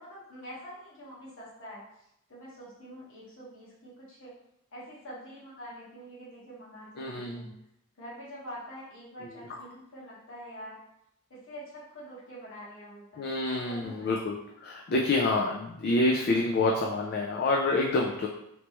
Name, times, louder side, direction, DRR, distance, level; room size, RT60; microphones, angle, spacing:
voice 1, 0.0-1.8 2.3-4.3 4.7-7.5 8.0-10.8 11.4-14.3, equal, 60° left, -6 dB, 1.3 m, -45 dB
voice 2, 7.0-7.5 13.2-18.3, left 2 dB, 45° left, -1 dB, 0.3 m, -27 dB
3.2 x 3.0 x 2.9 m, 0.79 s
head